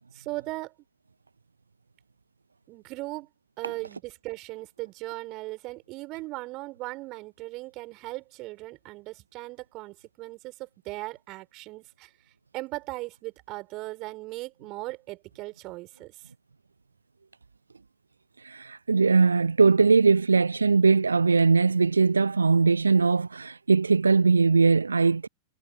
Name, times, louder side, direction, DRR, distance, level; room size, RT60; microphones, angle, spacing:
voice 1, 0.1-0.7 2.7-3.3 3.6-12.1 12.5-16.3, right 21 dB, 40° right, 6.4 m, -38 dB
voice 2, 18.4-25.3, right 4 dB, 75° right, 0.3 m, -20 dB
figure-of-eight pair, 90°, 0 cm